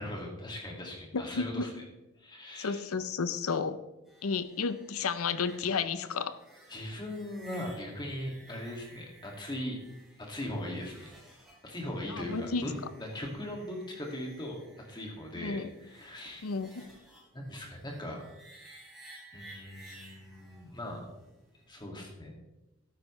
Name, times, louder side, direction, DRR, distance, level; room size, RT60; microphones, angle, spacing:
voice 1, 0.0-1.7 2.2-2.8 6.7-9.8 10.2-11.1 11.6-12.7 13.0-14.6 14.9-16.4 17.3-18.2 19.3-21.0 21.7-22.3, left 1 dB, 20° left, 0 dB, 2.2 m, -39 dB
voice 2, 1.1-1.7 2.6-3.8 4.2-6.3 12.1-12.6 15.4-15.7 16.4-16.8, left 5 dB, 85° left, 13 dB, 0.7 m, -32 dB
sound 1, 4.1-21.9, right 2 dB, ahead, 3.2 m, -56 dB
12.5 x 9.1 x 3.2 m, 0.96 s
head